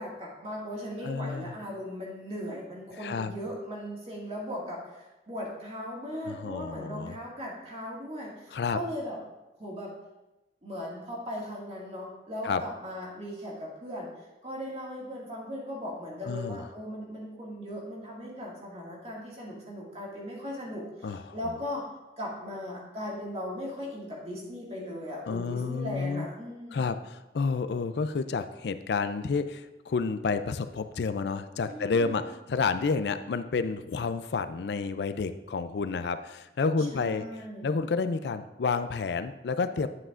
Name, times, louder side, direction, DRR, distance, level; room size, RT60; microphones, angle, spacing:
voice 1, 0.0-9.2 9.6-9.9 10.6-14.1 14.4-21.8 22.2-26.8 31.7-32.2 36.8-37.7, equal, 35° right, -4 dB, 2.0 m, -38 dB
voice 2, 1.0-1.5 3.0-3.3 6.3-7.2 8.5-8.8 12.4-12.6 16.3-16.6 21.0-21.3 25.3-26.3 26.7-32.2 32.5-37.3 37.6-39.9, left 4 dB, 75° left, 11 dB, 0.4 m, -30 dB
9.7 x 7.7 x 2.5 m, 1.0 s
head